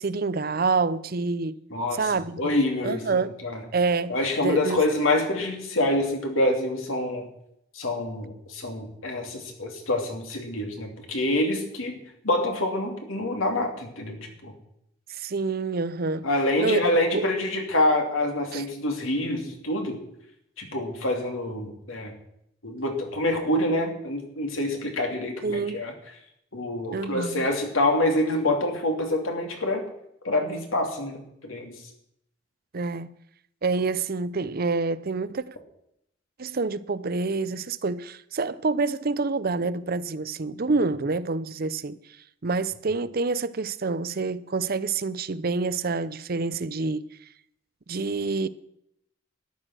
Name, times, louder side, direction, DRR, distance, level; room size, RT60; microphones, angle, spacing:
voice 1, 0.0-1.6 1.9-2.5 2.8-3.3 3.7-4.2 4.4-4.8 15.1-16.3 16.6-16.8 17.1-17.2 18.5-18.6 25.4-25.8 26.9-27.5 32.7-33.1 33.6-35.5 36.4-42.0 42.4-47.1 47.9-48.5, right 4 dB, 50° right, 0.6 m, -27 dB
voice 2, 1.7-2.1 2.4-3.6 4.1-7.3 7.7-14.5 16.2-20.0 20.6-22.1 22.6-25.9 26.5-29.8 30.2-31.7, left 1 dB, 90° left, 3.0 m, -26 dB
13.5 x 11.0 x 6.2 m
head